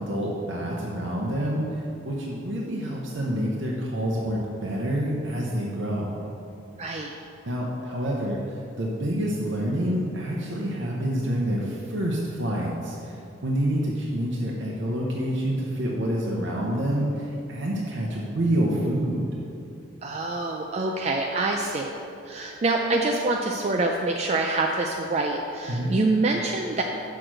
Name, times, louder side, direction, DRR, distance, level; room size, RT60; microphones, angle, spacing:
voice 1, 0.0-6.2 7.5-19.3 25.7-25.9, equal, 65° right, -3 dB, 0.8 m, -27 dB
voice 2, 6.8-7.1 20.0-21.9 22.3-26.8, right 2 dB, 30° right, 1 dB, 0.3 m, -26 dB
6.3 x 4.7 x 6.1 m, 2.6 s
head